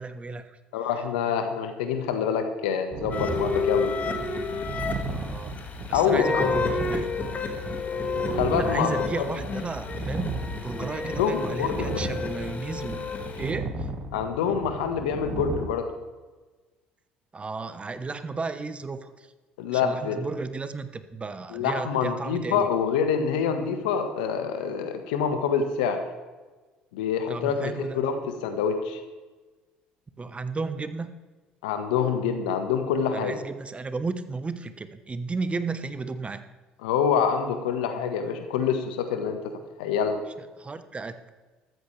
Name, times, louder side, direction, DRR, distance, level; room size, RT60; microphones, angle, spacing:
voice 1, 0.0-0.6 5.0-5.6 5.9-7.1 8.6-13.1 13.4-13.9 17.3-19.3 19.7-22.7 27.3-28.0 30.2-31.1 33.1-36.4 40.6-41.3, right 4 dB, 25° right, 11 dB, 1.1 m, -34 dB
voice 2, 0.7-4.3 5.9-6.6 8.1-9.3 11.2-12.0 14.1-15.9 19.6-20.2 21.5-26.0 26.9-29.0 31.6-33.4 36.8-39.5 39.8-40.2, left 7 dB, 80° left, 7 dB, 1.5 m, -26 dB
sound 1, 2.9-15.7, right 3 dB, 45° right, 1.7 m, -35 dB
sound 2, 3.1-13.5, left 4 dB, 35° left, 2.1 m, -31 dB
14.0 x 13.5 x 3.4 m, 1.3 s
hypercardioid pair, 60°, 4 cm